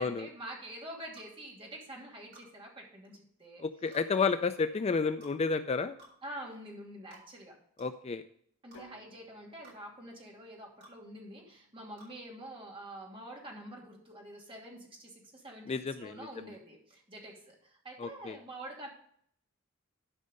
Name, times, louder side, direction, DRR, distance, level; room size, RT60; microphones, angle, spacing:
voice 1, 0.0-3.6 6.2-7.5 8.6-15.7 16.0-18.9, right 1 dB, 25° right, -2 dB, 2.8 m, -46 dB
sound 1, 1.1-1.3 2.3-2.5 3.9-4.1 5.2-5.4 6.0-6.2 7.1-7.3 7.8-7.9 8.7-8.8 9.6-9.8 10.8-11.0 12.0-12.1, right 1 dB, 50° right, 4.2 m, -55 dB
voice 2, 3.6-6.0 7.8-8.2 15.7-16.3 18.0-18.4, left 4 dB, 30° left, 10 dB, 0.4 m, -31 dB
sound 2, 8.7-12.8, equal, 65° left, 1.5 m, -61 dB
12.0 x 5.4 x 5.3 m, 0.65 s
head